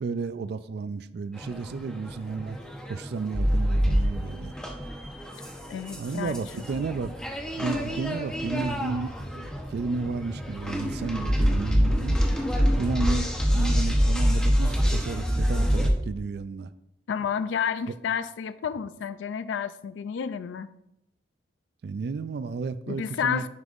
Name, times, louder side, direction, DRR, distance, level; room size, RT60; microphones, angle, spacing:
voice 1, 0.0-2.6 2.9-4.5 6.0-7.1 7.5-12.2 12.8-16.7 21.8-23.4, right 4 dB, 60° right, 12 dB, 0.3 m, -32 dB
sound 1, 1.4-15.9, equal, 5° left, 0.7 m, -26 dB
voice 2, 5.7-6.4 17.1-20.7 22.9-23.5, left 7 dB, 90° left, 13 dB, 0.3 m, -30 dB
9.6 x 5.3 x 2.5 m, 0.82 s
head